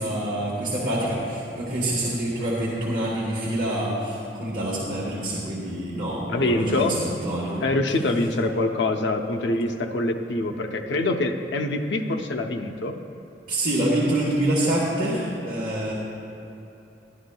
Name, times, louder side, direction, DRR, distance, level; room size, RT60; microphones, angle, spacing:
voice 1, 0.0-7.6 13.5-15.9, right 1 dB, 50° right, -6 dB, 1.1 m, -26 dB
voice 2, 6.3-7.0 7.6-13.0, left 2 dB, 90° left, 5 dB, 0.6 m, -25 dB
11.5 x 11.0 x 2.2 m, 2.9 s
head